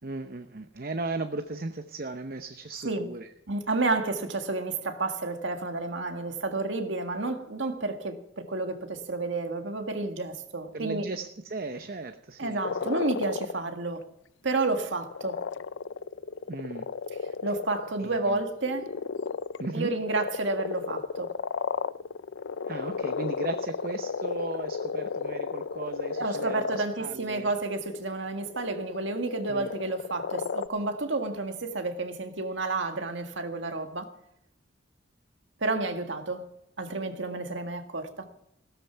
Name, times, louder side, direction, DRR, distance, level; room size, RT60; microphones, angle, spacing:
voice 1, 0.0-3.3 10.7-12.9 16.5-16.9 18.0-18.4 19.6-19.9 22.7-27.5 29.5-29.7, right 2 dB, 50° right, 0.8 m, -36 dB
voice 2, 3.5-11.1 12.4-14.0 14.4-15.4 17.4-18.9 19.7-21.4 26.2-34.1 35.6-38.3, right 3 dB, 75° right, 1.7 m, -30 dB
sound 1, 12.6-13.6 13.9-14.0 15.0-17.9 18.4-30.7, left 5 dB, 80° left, 0.5 m, -34 dB
16.0 x 13.0 x 5.8 m
head